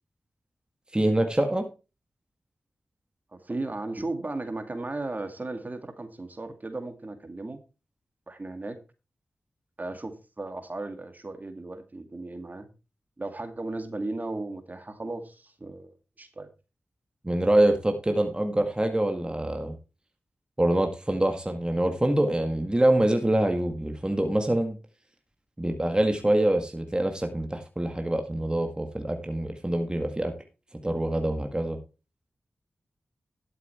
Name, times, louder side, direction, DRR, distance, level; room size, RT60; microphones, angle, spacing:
voice 1, 0.9-1.7 17.2-19.8 20.6-24.8 25.6-30.3 30.8-31.8, right 1 dB, 20° right, 5 dB, 1.9 m, -25 dB
voice 2, 3.3-7.6 8.3-8.8 9.8-12.7 13.2-16.5, right 2 dB, 40° right, 8 dB, 2.2 m, -36 dB
12.0 x 7.6 x 4.4 m, 0.31 s
cardioid pair, 45°, 4 cm